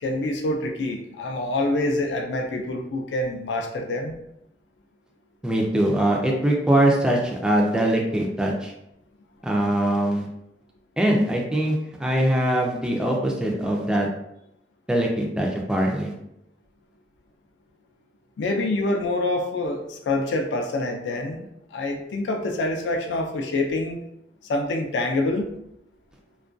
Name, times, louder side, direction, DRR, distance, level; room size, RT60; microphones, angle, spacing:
voice 1, 0.0-4.2 18.4-24.0 24.4-25.5, left 2 dB, 75° left, 3 dB, 0.3 m, -26 dB
voice 2, 5.4-8.7 9.4-10.3 11.0-14.1 14.9-16.1, right 1 dB, 5° right, -1 dB, 0.3 m, -22 dB
2.3 x 2.2 x 2.5 m, 0.80 s
head